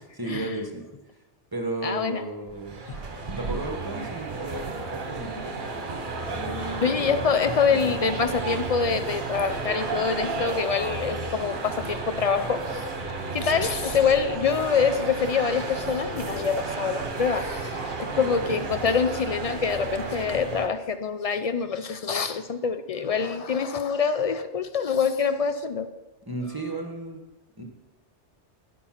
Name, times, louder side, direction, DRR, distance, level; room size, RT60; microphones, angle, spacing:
voice 1, 0.1-0.8 1.5-2.8 3.3-5.7 6.3-8.1 18.1-18.6 26.3-27.2 27.6-27.7, right 2 dB, 20° right, 3 dB, 1.1 m, -34 dB
voice 2, 1.8-2.2 2.9-3.2 6.8-12.9 13.3-25.9, left 6 dB, 70° left, 10 dB, 0.3 m, -25 dB
sound 1, 2.5-20.7, right 3 dB, 45° right, 1.2 m, -32 dB
10.0 x 7.0 x 5.7 m, 1.1 s
omnidirectional pair, 1.2 m